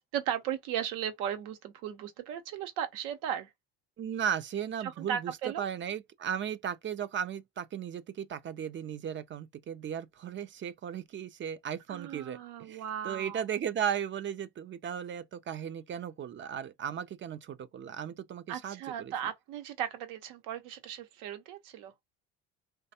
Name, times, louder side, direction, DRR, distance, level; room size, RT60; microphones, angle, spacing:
voice 1, 0.1-3.5 4.8-5.7 11.9-13.4 18.5-21.9, right 9 dB, 80° right, 0.8 m, -36 dB
voice 2, 4.0-19.1, right 8 dB, 40° right, 0.5 m, -36 dB
3.2 x 2.2 x 2.7 m
supercardioid pair, 75°, 30 cm